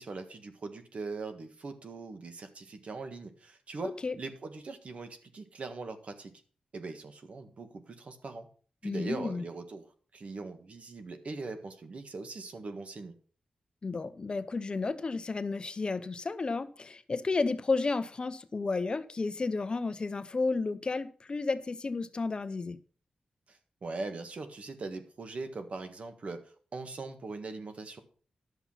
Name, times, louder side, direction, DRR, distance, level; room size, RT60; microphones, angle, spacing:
voice 1, 0.0-6.3 6.7-8.5 8.8-9.9 10.1-13.1 23.5-26.5 26.7-28.0, right 3 dB, 60° right, 1.6 m, -41 dB
voice 2, 3.8-4.2 8.8-9.4 13.8-22.8, left 3 dB, 40° left, 0.7 m, -32 dB
11.0 x 7.0 x 5.7 m
wide cardioid pair, 105°, 2 cm